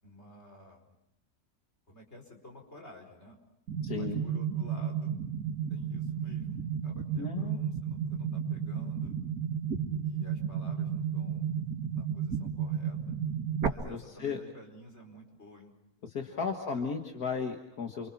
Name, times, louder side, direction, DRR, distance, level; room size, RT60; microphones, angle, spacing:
voice 1, 0.0-0.9 1.9-3.4 3.9-5.2 5.7-9.1 10.0-11.5 11.9-13.0 13.6-15.7 16.0-16.9, equal, 45° left, 2 dB, 5.1 m, -52 dB
sound 1, 3.7-13.7, right 7 dB, 75° right, 2.2 m, -33 dB
voice 2, 3.8-4.2 7.2-7.6 13.8-14.4 16.0-18.1, left 5 dB, 75° left, 3 dB, 2.2 m, -35 dB
29.5 x 25.5 x 6.0 m, 0.83 s
omnidirectional pair, 1.6 m